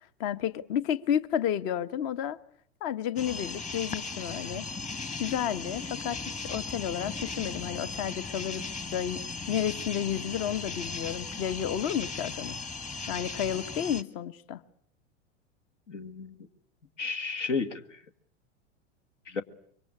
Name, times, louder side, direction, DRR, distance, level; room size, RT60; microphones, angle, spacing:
voice 1, 0.2-2.4 2.8-4.6 5.2-8.6 8.9-9.2 9.5-12.6 13.1-14.6, left 9 dB, 55° left, 1.3 m, -31 dB
sound 1, 3.2-14.0, left 4 dB, 20° left, 1.3 m, -37 dB
voice 2, 15.9-16.5 17.0-18.0 19.3-19.4, left 4 dB, 85° left, 2.0 m, -33 dB
25.5 x 23.5 x 8.6 m
hypercardioid pair, 100°, 36 cm